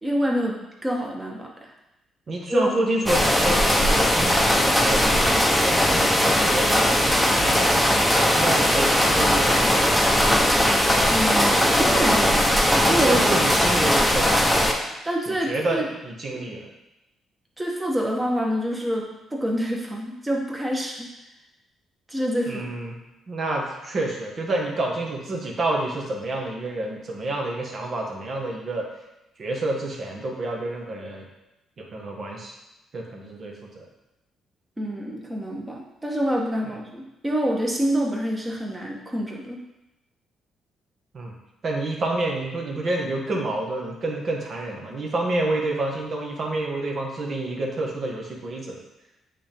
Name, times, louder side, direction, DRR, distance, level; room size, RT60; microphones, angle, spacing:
voice 1, 0.0-1.7 2.5-2.7 11.1-13.2 15.0-15.9 16.3-16.5 17.6-21.1 22.1-22.7 34.8-39.6, equal, 15° right, -1 dB, 1.3 m, -27 dB
voice 2, 2.3-7.8 8.1-10.2 12.8-14.5 15.3-16.7 22.5-23.0 23.3-28.9 29.4-31.2 31.8-32.5 32.9-33.8 41.1-41.4 41.6-48.8, right 2 dB, 50° right, 0 dB, 1.5 m, -29 dB
sound 1, 3.1-14.7, equal, ahead, 1.0 m, -19 dB
8.3 x 3.5 x 3.6 m, 0.95 s
cardioid pair, 90°, 0 cm